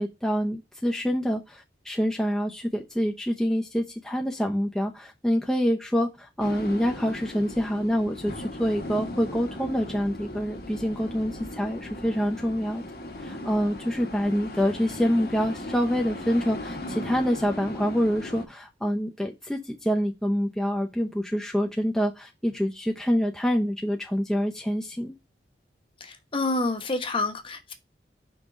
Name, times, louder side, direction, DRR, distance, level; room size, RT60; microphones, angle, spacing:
voice 1, 0.0-12.8 13.2-25.1, equal, 5° left, 0.6 m, -26 dB
sound 1, 6.4-18.5, left 1 dB, 60° left, 1.3 m, -37 dB
voice 2, 26.0-27.7, left 2 dB, 30° left, 1.0 m, -28 dB
5.4 x 3.6 x 4.9 m
head